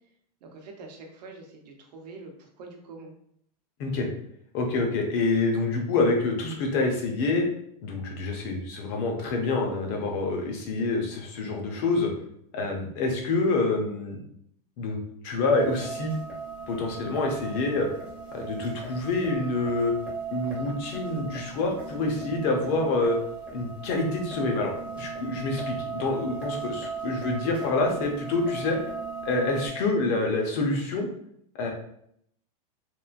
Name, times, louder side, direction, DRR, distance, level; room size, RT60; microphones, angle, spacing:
voice 1, 0.4-3.1, right 3 dB, 90° right, 2 dB, 0.7 m, -45 dB
voice 2, 4.5-7.4 7.8-12.1 12.5-14.2 14.8-15.0 15.2-16.1 16.7-17.9 18.3-19.9 20.3-23.2 23.5-28.8 29.2-31.1 31.5-31.7, left 3 dB, 40° left, 2 dB, 0.6 m, -27 dB
sound 1, 15.5-29.7, right 4 dB, 5° right, 0.5 m, -37 dB
3.0 x 2.4 x 2.3 m, 0.70 s
supercardioid pair, 165°, 20 cm